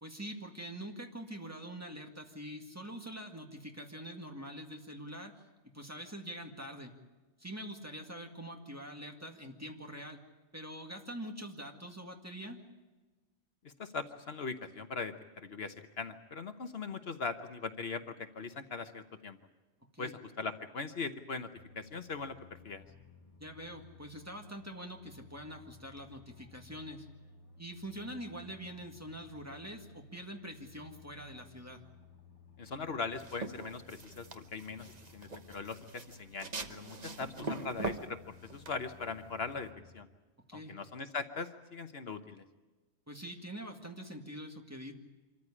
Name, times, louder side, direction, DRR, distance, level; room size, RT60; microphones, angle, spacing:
voice 1, 0.0-6.9 7.4-10.2 10.5-12.6 19.9-20.1 23.4-27.1 27.6-31.8 37.4-37.6 40.5-40.7 43.1-44.9, equal, 15° right, 2 dB, 2.0 m, -45 dB
voice 2, 13.6-19.4 20.0-21.5 21.8-22.4 22.6-22.8 32.6-40.1 40.5-42.4, left 4 dB, 65° left, 8 dB, 1.2 m, -40 dB
sound 1, 21.5-40.0, left 5 dB, 30° left, 1.7 m, -57 dB
sound 2, 33.1-39.7, right 3 dB, 40° right, 1.1 m, -43 dB
25.5 x 14.0 x 9.9 m, 1.2 s
omnidirectional pair, 1.2 m